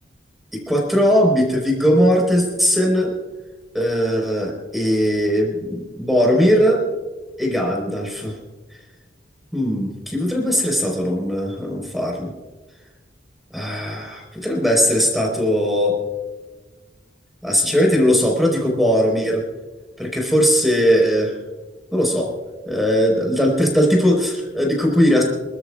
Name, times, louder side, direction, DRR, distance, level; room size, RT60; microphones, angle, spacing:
voice 1, 0.5-3.1 3.7-6.8 7.4-8.3 9.5-12.3 13.5-16.0 17.4-19.4 20.0-21.3 21.9-22.3 22.7-25.2, equal, ahead, -1 dB, 4.5 m, -19 dB
28.5 x 13.0 x 2.5 m, 1.3 s
head